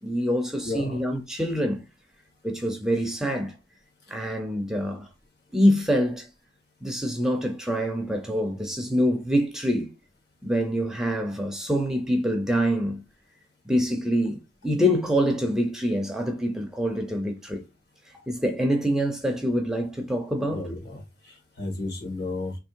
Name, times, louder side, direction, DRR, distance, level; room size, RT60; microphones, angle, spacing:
voice 1, 0.0-1.8 2.4-3.5 4.1-5.1 5.5-6.3 6.8-9.9 10.4-13.0 13.7-17.6 18.3-20.6, equal, 5° right, 0.6 m, -25 dB
voice 2, 0.6-1.1 20.5-22.6, left 2 dB, 60° left, 1.9 m, -33 dB
3.5 x 3.0 x 4.4 m
head